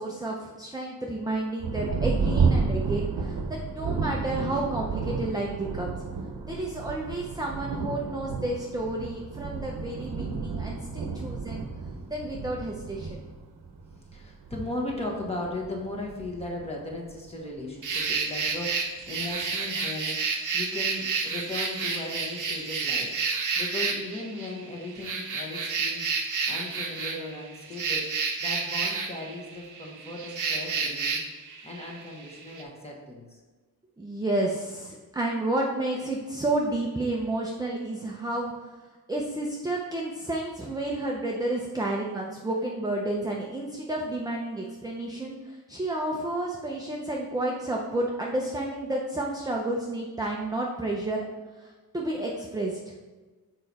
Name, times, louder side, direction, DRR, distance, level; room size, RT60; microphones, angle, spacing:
voice 1, 0.0-6.0 6.4-11.7 12.1-13.2 34.0-38.5 39.1-51.3 51.6-52.9, right 2 dB, 10° right, -2 dB, 0.5 m, -31 dB
Thunder, 1.6-17.7 18.4-18.5 19.1-19.5, right 4 dB, 90° right, 0.9 m, -31 dB
voice 2, 14.1-28.1 28.4-33.4, left 2 dB, 15° left, -2 dB, 1.3 m, -37 dB
sound 1, 17.8-32.6, right 4 dB, 55° right, 0.8 m, -30 dB
6.8 x 4.6 x 4.1 m, 1.3 s
wide cardioid pair, 180°, 38 cm